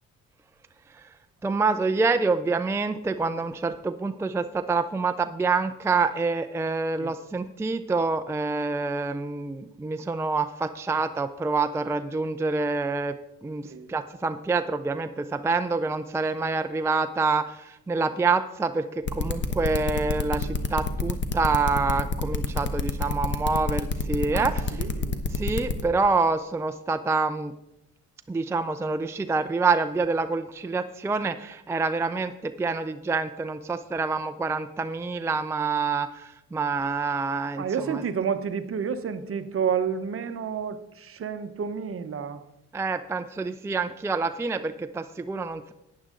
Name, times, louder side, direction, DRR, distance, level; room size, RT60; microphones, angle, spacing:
voice 1, 1.4-13.2 13.4-24.8 25.3-27.5 28.3-38.0 42.7-45.7, right 4 dB, 10° right, 9 dB, 0.4 m, -27 dB
sound 1, 19.1-25.8, left 4 dB, 40° left, 1.1 m, -27 dB
voice 2, 24.8-25.2 37.6-42.4, right 7 dB, 45° right, 10 dB, 0.9 m, -30 dB
11.5 x 9.4 x 3.8 m, 0.87 s
cardioid pair, 90°, 30 cm